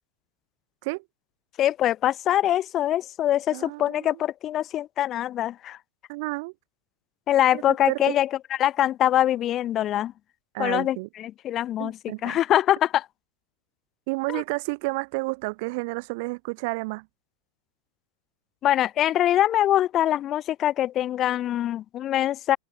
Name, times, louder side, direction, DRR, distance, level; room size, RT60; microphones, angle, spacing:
voice 1, 1.6-5.8 7.3-8.3 8.6-10.1 10.6-13.1 14.3-14.4 18.6-22.6, left 12 dB, 30° left, 0.4 m, -23 dB
voice 2, 3.5-4.2 6.1-6.5 7.5-7.6 7.9-8.2 10.5-11.1 11.8-12.4 14.1-17.1, right 27 dB, 50° right, 0.4 m, -31 dB
figure-of-eight pair, 90°, 0 cm